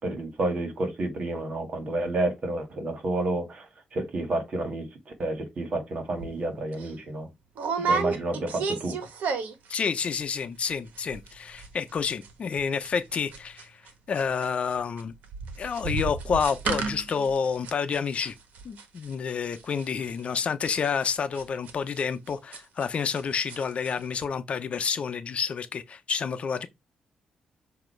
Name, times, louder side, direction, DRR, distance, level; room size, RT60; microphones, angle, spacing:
voice 1, 0.0-3.7 3.9-4.9 5.2-7.3 7.9-8.9, right 2 dB, 50° right, 2.1 m, -30 dB
sound 1, 6.2-6.4 6.7-6.9 7.6-9.7 10.0-10.4 10.6-10.7 11.0-11.3 11.6-13.9 14.2-23.2 23.5-23.9 24.2-24.3, right 4 dB, 85° right, 1.4 m, -32 dB
voice 2, 9.7-13.8 14.1-15.1 15.6-18.3 18.6-26.7, left 6 dB, 50° left, 0.8 m, -29 dB
7.5 x 2.9 x 4.5 m
cardioid pair, 105°, 3 cm